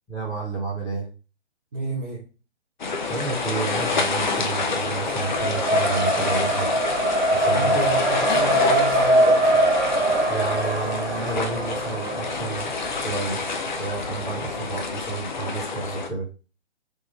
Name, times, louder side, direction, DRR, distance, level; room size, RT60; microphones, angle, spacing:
voice 1, 0.1-1.1 3.1-6.7 7.3-7.8 10.3-13.4 13.8-16.3, right 4 dB, 10° left, -6 dB, 1.1 m, -30 dB
voice 2, 1.7-2.2 7.5-9.6, right 2 dB, 20° right, -6 dB, 0.5 m, -30 dB
sound 1, 2.8-16.1, left 4 dB, 40° left, 0.5 m, -28 dB
Race car auto racing, 3.6-14.7, right 1 dB, 75° right, 1.2 m, -24 dB
3.7 x 2.4 x 3.1 m, 0.33 s
figure-of-eight pair, 135°, 35 cm